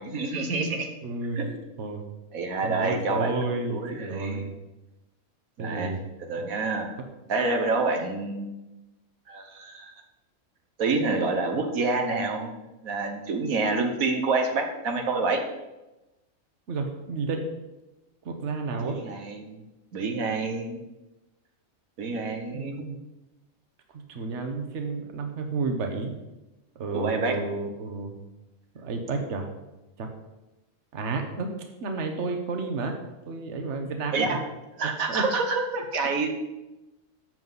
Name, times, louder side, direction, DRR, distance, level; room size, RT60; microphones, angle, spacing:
voice 1, 0.0-0.9 1.4-1.5 2.3-4.4 5.6-6.9 7.3-8.5 9.3-9.9 10.8-12.6 12.8-15.4 18.8-19.6 19.9-20.8 22.0-22.9 26.9-27.4 34.1-34.4 34.8-36.3, right 3 dB, 85° right, 3 dB, 1.7 m, -28 dB
voice 2, 1.0-1.5 1.8-2.0 2.6-4.5 5.6-6.0 16.7-17.4 18.2-19.0 22.5-23.0 23.9-26.1 26.7-28.2 28.7-29.5 30.0-30.1 30.9-31.5 31.8-32.9 33.3-34.4 35.1-35.2, right 3 dB, 60° right, 4 dB, 1.4 m, -31 dB
12.0 x 7.6 x 4.0 m, 1.0 s
omnidirectional pair, 1.4 m